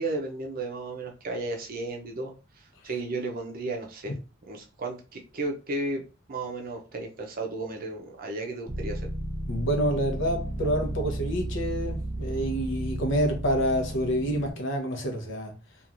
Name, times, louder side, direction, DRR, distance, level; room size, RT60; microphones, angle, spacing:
voice 1, 0.0-2.3 2.8-4.1 4.5-6.0 6.3-9.1, right 2 dB, 45° right, 0.6 m, -33 dB
sound 1, 8.7-14.5, right 1 dB, 5° right, 0.7 m, -33 dB
voice 2, 9.5-15.5, equal, 65° left, 0.7 m, -27 dB
3.0 x 2.4 x 2.5 m
head